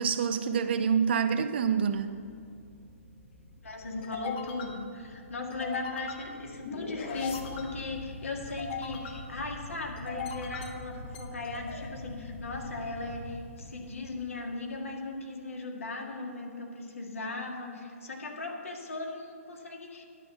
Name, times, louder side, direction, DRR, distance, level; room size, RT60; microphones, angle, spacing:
voice 1, 0.0-2.1, right 7 dB, 45° right, 10 dB, 0.6 m, -26 dB
sound 1, 1.7-14.4, left 4 dB, 40° left, 1.2 m, -41 dB
voice 2, 3.6-20.0, left 3 dB, 65° left, 1 dB, 1.9 m, -38 dB
11.0 x 6.0 x 7.0 m, 2.3 s
figure-of-eight pair, 125°, 8 cm